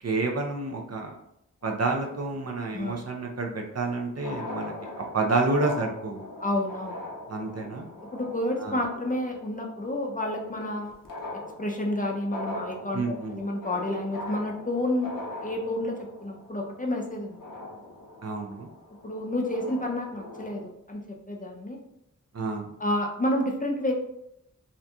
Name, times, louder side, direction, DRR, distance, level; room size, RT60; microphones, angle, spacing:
voice 1, 0.0-1.1 1.6-6.3 7.3-7.9 8.6-8.8 12.9-13.4 18.2-18.7 22.3-22.7, right 3 dB, 55° right, 1 dB, 0.5 m, -29 dB
sound 1, 1.6-2.7 3.9-4.0 4.1-20.6, left 1 dB, 80° left, 0.6 m, -41 dB
voice 2, 6.4-7.0 8.1-10.9 11.6-13.0 13.3-15.1 15.4-17.4 19.0-21.8 22.8-23.9, left 1 dB, 25° left, 0 dB, 0.4 m, -30 dB
2.7 x 2.5 x 2.2 m, 0.80 s
wide cardioid pair, 45°, 32 cm